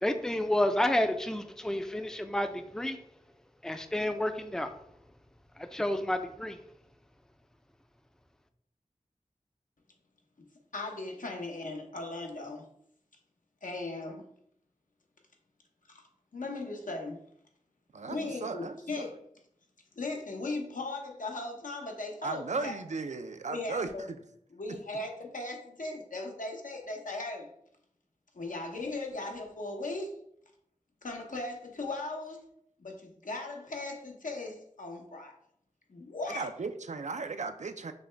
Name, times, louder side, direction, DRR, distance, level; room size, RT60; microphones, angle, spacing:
voice 1, 0.0-3.0 3.6-4.7 5.6-6.6, left 1 dB, 5° left, 8 dB, 0.4 m, -30 dB
voice 2, 10.7-12.6 13.6-14.2 15.9-16.0 16.3-17.2 18.0-19.2 20.0-22.8 23.5-24.1 24.5-27.5 28.3-30.2 31.0-32.4 32.8-35.4 35.9-36.5, left 2 dB, 75° left, 1 dB, 0.9 m, -38 dB
voice 3, 17.9-19.1 22.2-23.9 36.3-37.9, right 4 dB, 60° right, 8 dB, 0.4 m, -36 dB
6.1 x 2.2 x 3.3 m, 0.70 s
wide cardioid pair, 45°, 14 cm